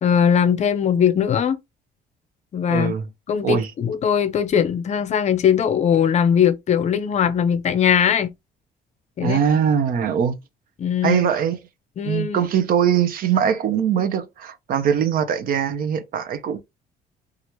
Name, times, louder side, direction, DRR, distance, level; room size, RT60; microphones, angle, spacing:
voice 1, 0.0-1.6 2.5-2.9 3.3-8.3 9.2-9.4 10.8-11.2 12.0-12.5, left 8 dB, 45° left, 0.5 m, -20 dB
voice 2, 2.7-3.0 3.4-3.7 9.2-10.4 11.0-11.6 12.0-16.6, right 8 dB, 60° right, 0.6 m, -21 dB
2.9 x 2.4 x 2.9 m
cardioid pair, 110°, 17 cm